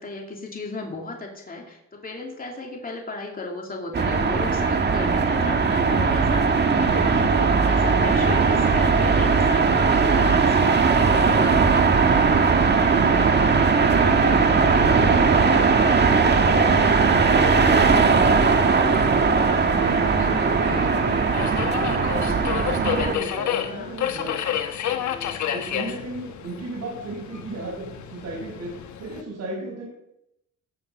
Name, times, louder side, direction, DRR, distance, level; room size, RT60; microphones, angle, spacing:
voice 1, 0.0-11.8 20.1-20.9 23.4-24.0 24.8-25.4, left 3 dB, 30° left, 0 dB, 2.8 m, -36 dB
sound 1, 3.9-23.1, right 4 dB, 35° right, 1.6 m, -19 dB
voice 2, 6.6-7.5 13.3-16.2 16.4-19.5 19.8-24.7 25.5-28.7 29.0-29.9, right 2 dB, 65° right, -6 dB, 5.7 m, -35 dB
sound 2, 11.7-22.2, right 8 dB, 90° right, 2.7 m, -34 dB
Subway metro underground, 18.7-29.2, left 10 dB, 70° left, 1.3 m, -31 dB
16.5 x 7.2 x 5.6 m, 0.82 s
cardioid pair, 90°, 30 cm